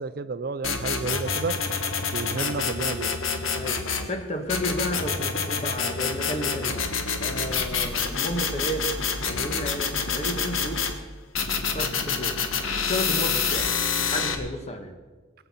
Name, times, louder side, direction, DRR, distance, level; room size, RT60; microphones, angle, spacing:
voice 1, 0.0-1.6 2.1-3.1, right 4 dB, 50° right, 14 dB, 0.4 m, -31 dB
sound 1, 0.6-4.1 4.5-10.9 11.3-14.3, left 5 dB, 85° left, 1.3 m, -27 dB
voice 2, 3.5-3.8 4.1-6.9 7.2-8.9 9.2-10.9 11.7-12.4 12.7-13.7 14.0-14.9, equal, 30° left, 5 dB, 1.4 m, -32 dB
19.0 x 8.1 x 5.7 m, 1.3 s
head